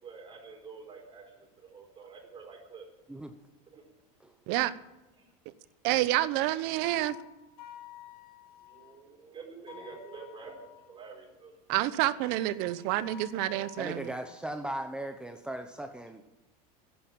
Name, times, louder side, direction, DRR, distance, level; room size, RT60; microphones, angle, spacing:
voice 1, 0.0-2.8 3.7-3.8 8.6-11.5 12.7-12.8, right 5 dB, 25° right, 1 dB, 4.5 m, -48 dB
voice 2, 5.8-7.2 11.7-14.1, right 15 dB, 55° right, 15 dB, 1.0 m, -28 dB
sound 1, 6.8-8.9 9.7-10.9 12.2-14.4, left 13 dB, 70° left, 4.4 m, -51 dB
voice 3, 13.8-16.2, right 1 dB, 5° right, 6 dB, 0.9 m, -38 dB
11.0 x 10.5 x 9.0 m, 1.0 s
supercardioid pair, 135°, 19 cm